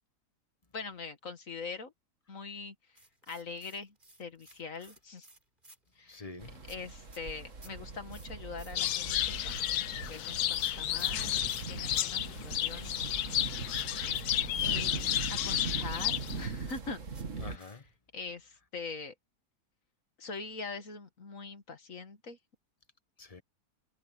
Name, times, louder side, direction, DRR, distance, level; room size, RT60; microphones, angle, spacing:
voice 1, 0.7-1.9 2.3-2.7 3.3-5.3 6.0-6.3 6.7-13.0 14.6-17.0 17.5-17.7 18.1-19.1 20.2-22.4, left 4 dB, 60° left, 2.2 m, -43 dB
sound 1, 3.0-6.1 6.6-12.1 12.3-12.4 12.8-18.0, right 1 dB, 30° right, 4.9 m, -57 dB
voice 2, 6.1-6.6 14.2-15.0 17.4-17.8 23.2-23.4, left 3 dB, 25° left, 1.2 m, -48 dB
sound 2, 6.4-17.6, right 4 dB, 55° right, 2.4 m, -41 dB
sound 3, 8.7-16.5, left 12 dB, 80° left, 1.2 m, -32 dB
omnidirectional pair, 1.6 m